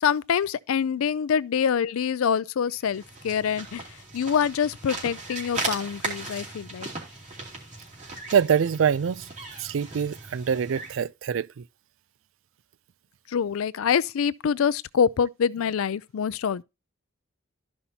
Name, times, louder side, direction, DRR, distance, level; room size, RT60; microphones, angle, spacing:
voice 1, 0.0-3.8 4.1-6.9 13.3-16.6, left 7 dB, 80° left, 0.4 m, -25 dB
sound 1, 2.8-11.0, right 2 dB, 35° right, 2.7 m, -37 dB
voice 2, 8.3-9.3 9.6-11.7, right 7 dB, 65° right, 0.4 m, -24 dB
13.0 x 5.5 x 2.8 m
head